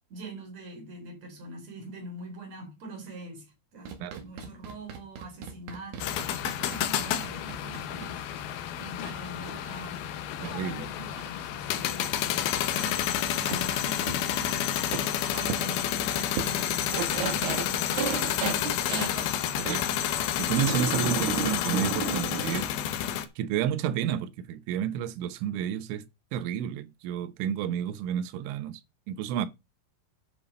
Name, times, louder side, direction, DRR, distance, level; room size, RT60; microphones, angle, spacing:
voice 1, 0.1-10.1 11.0-15.0 15.3-19.1, right 2 dB, 40° right, 4.0 m, -44 dB
sound 1, 3.9-8.2 9.1-9.2 10.4-10.5 11.2-11.3 12.0-12.1 13.5-13.6 14.1-14.2 14.9-15.1 15.5-15.6 16.4-16.5 16.8-19.8 20.5-22.6, right 6 dB, 60° right, 3.7 m, -33 dB
sound 2, 6.0-23.3, left 11 dB, 80° left, 2.2 m, -30 dB
voice 2, 10.4-10.9 19.6-22.7 23.4-26.1 26.3-28.8 29.1-29.5, right 9 dB, 80° right, 3.3 m, -31 dB
11.0 x 6.0 x 5.1 m
omnidirectional pair, 5.6 m